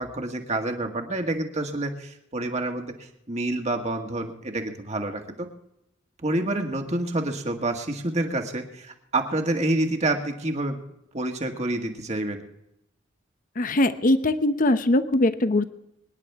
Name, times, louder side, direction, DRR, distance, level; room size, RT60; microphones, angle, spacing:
voice 1, 0.0-2.9 3.3-5.5 6.2-10.8 11.1-12.4, right 2 dB, 35° right, 4 dB, 1.9 m, -28 dB
voice 2, 13.6-15.7, left 1 dB, 45° left, 11 dB, 0.8 m, -21 dB
25.0 x 10.5 x 3.6 m, 0.83 s
head